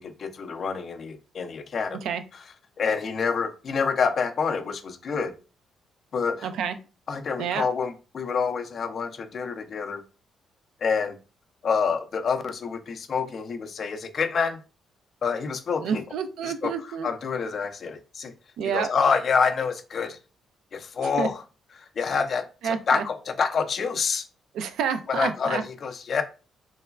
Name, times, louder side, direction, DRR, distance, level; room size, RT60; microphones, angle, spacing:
voice 1, 0.0-2.0 2.8-5.3 6.1-6.5 7.1-10.0 10.8-11.2 11.6-14.6 15.2-16.0 16.4-16.7 17.0-18.3 18.7-20.2 20.7-21.4 21.8-24.3 25.1-26.2, left 5 dB, 50° left, 0.4 m, -27 dB
voice 2, 6.4-6.8 7.4-7.7 15.8-17.1 18.6-18.9 21.0-21.3 22.6-23.0 24.5-25.6, right 7 dB, 80° right, 0.3 m, -29 dB
3.1 x 2.2 x 2.3 m
cardioid pair, 90°, 0 cm